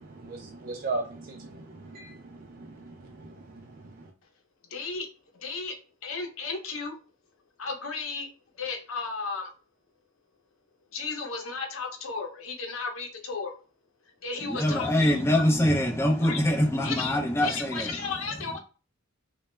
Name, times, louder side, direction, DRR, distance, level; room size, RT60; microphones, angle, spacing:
voice 1, 0.0-4.1, right 3 dB, 45° right, 0.4 m, -38 dB
voice 2, 4.7-5.1 5.3-5.7 6.0-6.9 7.6-8.3 8.6-9.5 10.9-13.5 14.2-15.4 16.2-16.4 16.8-17.1 17.4-18.6, left 4 dB, 80° left, 0.7 m, -34 dB
voice 3, 14.4-17.9, left 1 dB, 15° left, 0.6 m, -24 dB
2.2 x 2.1 x 3.1 m
head